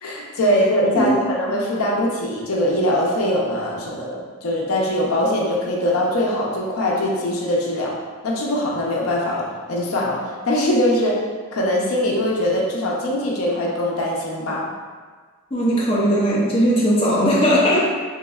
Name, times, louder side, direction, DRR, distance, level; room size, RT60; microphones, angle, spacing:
voice 1, 0.0-7.9 8.2-11.2 11.5-14.7, left 1 dB, 85° left, -3 dB, 0.6 m, -22 dB
voice 2, 15.5-17.8, equal, 25° left, -7 dB, 0.6 m, -18 dB
3.5 x 3.0 x 2.3 m, 1.5 s
head